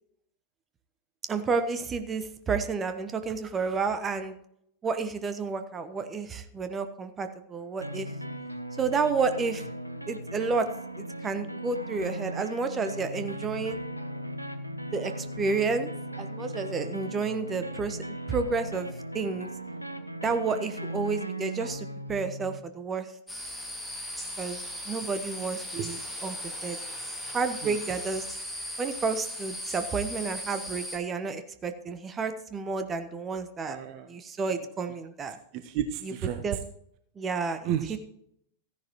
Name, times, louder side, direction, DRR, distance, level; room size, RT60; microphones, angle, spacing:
voice 1, 1.3-4.4 4.8-8.1 8.8-9.6 10.1-10.7 11.0-13.8 14.9-15.9 16.2-19.5 20.2-23.1 24.4-26.4 26.6-26.8 27.2-28.2 28.8-33.8 34.1-35.4 36.0-36.1 36.4-36.6 37.2-38.0, right 4 dB, 20° right, 9 dB, 1.1 m, -31 dB
sound 1, 7.8-22.6, right 1 dB, 90° right, 0.8 m, -38 dB
sound 2, 23.3-31.0, left 1 dB, ahead, 2.4 m, -37 dB
voice 2, 33.7-34.1 35.5-36.4 37.6-38.0, right 9 dB, 40° right, 9 dB, 0.8 m, -32 dB
14.5 x 10.5 x 3.0 m, 0.73 s
figure-of-eight pair, 90°, 0 cm